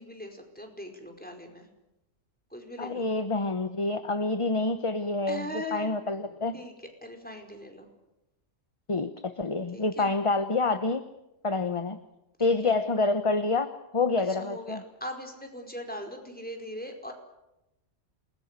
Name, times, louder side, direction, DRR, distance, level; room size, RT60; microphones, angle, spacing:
voice 1, 0.0-1.7 2.5-3.1 5.3-5.9 6.5-6.7 7.0-7.9 9.7-10.1 12.4-12.7 14.3-17.1, equal, 5° left, 4 dB, 4.8 m, -40 dB
voice 2, 2.8-6.6 8.9-11.0 11.4-12.0 12.4-14.8, left 3 dB, 25° left, 10 dB, 1.0 m, -27 dB
28.0 x 21.0 x 8.2 m, 0.92 s
omnidirectional pair, 1.3 m